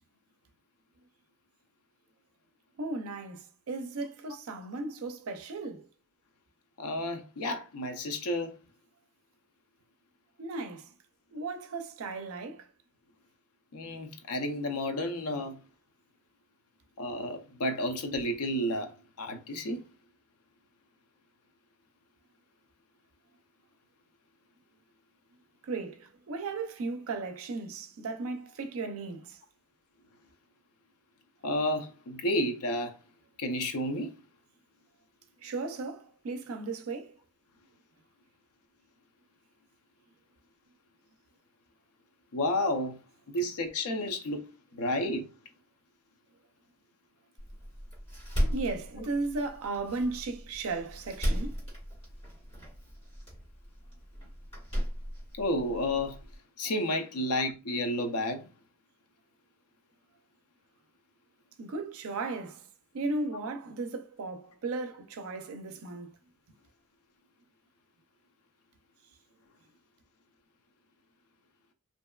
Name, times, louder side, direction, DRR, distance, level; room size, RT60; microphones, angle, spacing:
voice 1, 2.8-5.8 10.4-10.9 11.3-12.7 25.6-29.4 35.4-37.2 48.5-51.6 61.6-62.6 62.9-66.1, right 3 dB, 70° right, 0.4 m, -36 dB
voice 2, 6.8-8.5 13.7-15.6 17.0-18.9 19.2-19.8 31.4-33.0 33.4-34.1 42.3-43.0 43.3-44.4 44.7-45.3 55.4-56.2 56.6-58.5, left 1 dB, 80° left, 0.5 m, -31 dB
Door, 47.4-56.4, equal, 25° left, 1.2 m, -36 dB
2.6 x 2.2 x 2.2 m
head